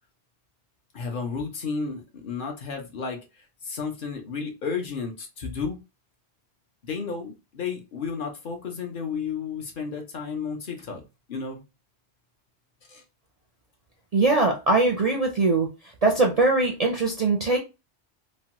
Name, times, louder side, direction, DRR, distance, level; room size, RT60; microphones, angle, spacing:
voice 1, 0.9-5.8 6.8-11.0 11.3-11.6 12.9-13.0, left 5 dB, 55° left, 3 dB, 0.7 m, -32 dB
voice 2, 14.1-15.7 16.0-17.6, right 3 dB, 50° right, 1 dB, 0.4 m, -21 dB
3.0 x 2.1 x 2.8 m, 0.27 s
omnidirectional pair, 1.2 m